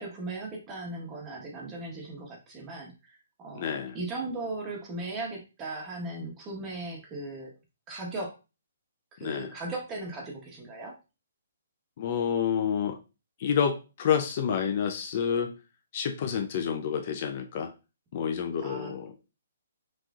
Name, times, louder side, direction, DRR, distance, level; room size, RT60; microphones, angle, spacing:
voice 1, 0.0-7.5 7.9-8.4 9.1-11.0 18.6-18.9, right 2 dB, 20° right, -1 dB, 1.2 m, -37 dB
voice 2, 3.5-4.0 9.2-9.5 12.0-13.0 13.4-15.5 15.9-17.7 18.1-19.1, left 7 dB, 40° left, 6 dB, 0.5 m, -29 dB
5.9 x 3.0 x 2.4 m, 0.29 s
hypercardioid pair, 165°, 0 cm